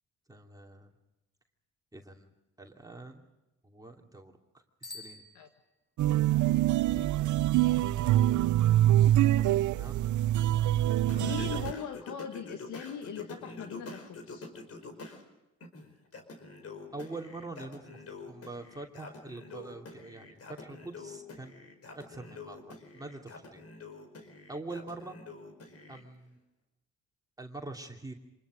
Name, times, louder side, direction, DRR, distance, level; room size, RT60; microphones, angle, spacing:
voice 1, 0.3-0.9 1.9-2.3 2.6-3.3 3.6-5.2 9.7-10.0 16.9-21.5 21.9-23.6 24.5-25.2 25.9-26.4 27.4-28.1, right 2 dB, 10° right, 2 dB, 2.8 m, -44 dB
Bicycle bell, 4.8-6.1, left 3 dB, 35° left, 7.7 m, -48 dB
sound 1, 6.0-11.7, right 13 dB, 75° right, 0.7 m, -25 dB
Singing, 11.1-15.2 15.6-26.0, left 3 dB, 50° left, 4.9 m, -46 dB
voice 2, 11.2-14.5, left 8 dB, 75° left, 6 dB, 1.8 m, -40 dB
27.0 x 20.5 x 6.4 m, 0.97 s
cardioid pair, 90°, 30 cm